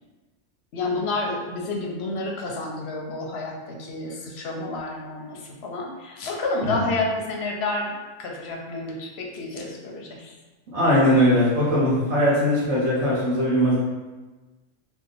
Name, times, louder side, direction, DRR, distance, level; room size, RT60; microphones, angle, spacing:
voice 1, 0.7-10.3, left 2 dB, 65° left, 0 dB, 0.7 m, -30 dB
voice 2, 10.7-13.8, equal, 70° right, -8 dB, 1.2 m, -20 dB
2.9 x 2.2 x 3.8 m, 1.2 s
omnidirectional pair, 1.3 m